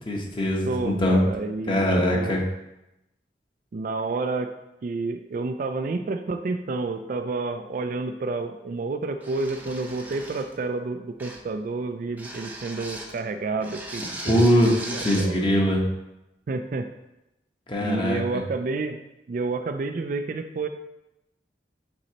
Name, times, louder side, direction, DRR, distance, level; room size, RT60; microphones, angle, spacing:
voice 1, 0.1-1.2 1.7-2.4 14.3-14.7 15.0-15.9 17.7-18.4, equal, 30° left, -1 dB, 1.0 m, -22 dB
voice 2, 0.7-2.4 3.7-4.5 4.8-14.5 14.8-15.4 16.5-16.9 17.8-19.0 19.3-20.7, right 3 dB, 50° right, 7 dB, 0.3 m, -30 dB
sound 1, 9.2-10.6 11.2-11.5 12.2-13.2 13.6-15.3, right 1 dB, 10° right, 0.6 m, -38 dB
8.0 x 4.1 x 2.8 m, 0.92 s
head